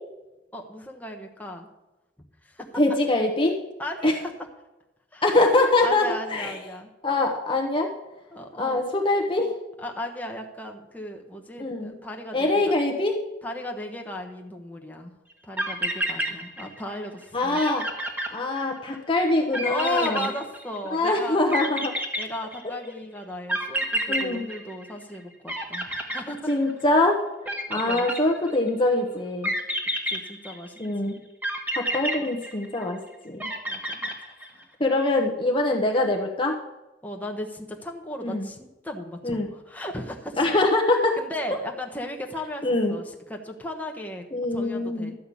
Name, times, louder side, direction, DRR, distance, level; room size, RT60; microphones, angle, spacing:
voice 1, 0.5-1.7 2.4-2.7 3.8-4.3 5.1-5.2 5.8-6.9 8.3-8.8 9.8-12.7 13.4-15.1 15.4-17.6 19.7-21.4 22.2-26.7 27.7-28.1 30.1-31.1 33.7-34.1 34.5-34.7 37.0-40.4 41.2-44.3 44.5-45.1, left 1 dB, 10° left, 2 dB, 1.2 m, -35 dB
voice 2, 2.8-3.6 4.0-4.1 5.2-6.5 7.0-7.9 8.6-9.6 11.6-12.0 12.3-13.2 17.3-17.9 18.3-20.3 20.9-21.9 24.1-24.5 26.5-27.2 27.7-29.5 30.8-31.2 31.7-33.5 34.8-36.6 38.2-38.5 39.2-39.5 40.4-41.2 42.6-43.0 44.3-45.1, left 2 dB, 30° left, 1 dB, 1.0 m, -23 dB
sound 1, 15.3-15.4 15.6-16.9 17.2-17.3 17.5-19.0 19.5-20.9 21.5-22.8 23.5-25.2 25.5-26.9 27.4-28.7 29.4-30.9 31.4-32.9 33.4-34.6, equal, 10° right, 1.5 m, -29 dB
12.5 x 5.7 x 8.4 m, 1.0 s
head